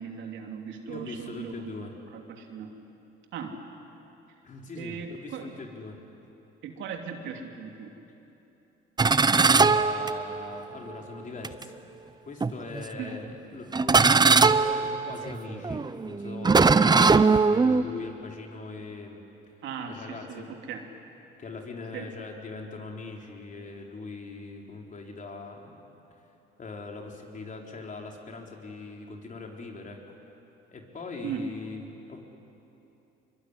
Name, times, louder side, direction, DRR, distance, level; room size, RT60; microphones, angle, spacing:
voice 1, 0.0-1.7 2.1-2.7 3.3-3.6 4.8-5.6 6.6-7.9 12.9-13.1 19.6-20.9 21.9-22.1 31.2-31.5, right 6 dB, 80° right, 3 dB, 3.0 m, -38 dB
voice 2, 0.9-1.9 4.4-6.0 9.3-11.8 12.3-19.2 19.9-20.5 21.4-25.9 26.6-30.0 30.7-32.2, left 3 dB, 45° left, 1 dB, 4.3 m, -41 dB
sound 1, 9.0-10.6 11.4-11.6 12.4-13.0 13.7-17.8, right 4 dB, 20° right, 0.8 m, -21 dB
24.5 x 23.0 x 9.9 m, 3.0 s
cardioid pair, 85°, 19 cm